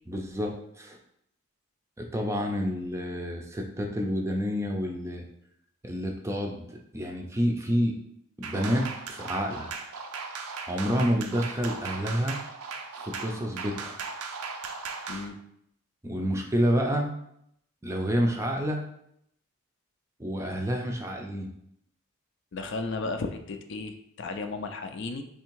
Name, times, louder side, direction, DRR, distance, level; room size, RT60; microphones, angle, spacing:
voice 1, 0.1-1.0 2.0-5.2 5.8-7.9 8.4-9.7 10.7-12.4 13.0-14.0 16.0-17.1 17.8-18.8 20.2-21.5, equal, 15° right, 1 dB, 0.4 m, -29 dB
sound 1, 8.4-15.3, right 4 dB, 80° right, 0.5 m, -38 dB
voice 2, 22.5-25.2, left 3 dB, 55° left, 7 dB, 0.4 m, -34 dB
3.5 x 3.3 x 4.6 m, 0.75 s
head